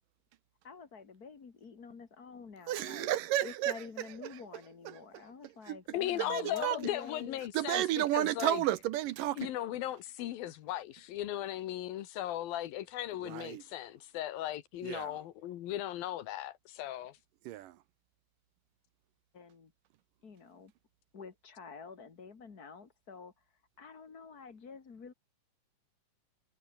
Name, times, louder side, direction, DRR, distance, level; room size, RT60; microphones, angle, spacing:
voice 1, 0.6-3.1 3.4-7.4 19.3-19.7 20.2-20.7 21.1-23.4 23.8-25.1, left 5 dB, 30° left, 2.1 m, -48 dB
voice 2, 2.7-3.8 4.2-4.4 4.9-5.0 5.4-5.8 6.3-6.9 7.5-9.5 13.2-13.6 14.8-15.2 17.5-17.8, right 14 dB, 75° right, 2.4 m, -32 dB
voice 3, 5.9-8.6 9.4-13.9 14.1-17.2, left 13 dB, 90° left, 3.2 m, -37 dB
omnidirectional pair, 4.0 m